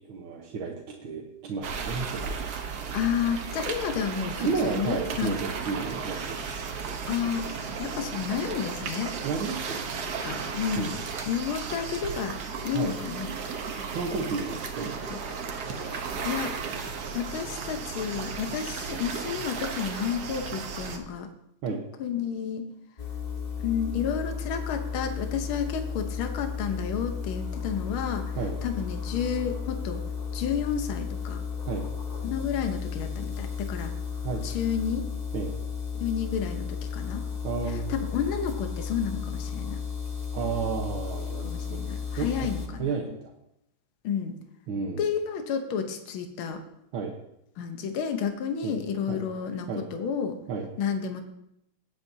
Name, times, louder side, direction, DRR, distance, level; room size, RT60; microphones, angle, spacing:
voice 1, 0.1-0.7 1.0-2.5 4.4-6.6 9.2-9.8 10.8-10.9 12.7-13.0 13.9-15.0 21.6-21.8 28.4-28.6 31.7-31.8 34.2-34.4 35.3-35.5 37.4-37.9 40.3-41.8 42.2-43.3 44.7-45.1 46.9-47.1 48.6-48.8 49.1-49.2 49.7-49.8 50.5-50.7, right 5 dB, 75° right, -1 dB, 1.9 m, -32 dB
sound 1, 1.6-21.0, right 5 dB, 55° right, 1.4 m, -35 dB
voice 2, 2.9-5.4 7.1-9.1 10.0-11.0 11.3-13.3 15.9-16.6 17.1-21.3 22.0-22.6 23.6-30.0 30.3-31.4 32.2-33.9 34.4-35.0 36.0-37.3 37.7-39.8 41.5-42.9 44.0-44.4 45.0-46.6 47.6-50.4 50.8-51.2, left 7 dB, 75° left, 6 dB, 1.8 m, -31 dB
sound 2, 23.0-42.7, left 6 dB, 30° left, 0.8 m, -34 dB
18.0 x 8.4 x 2.7 m, 0.80 s
omnidirectional pair, 2.3 m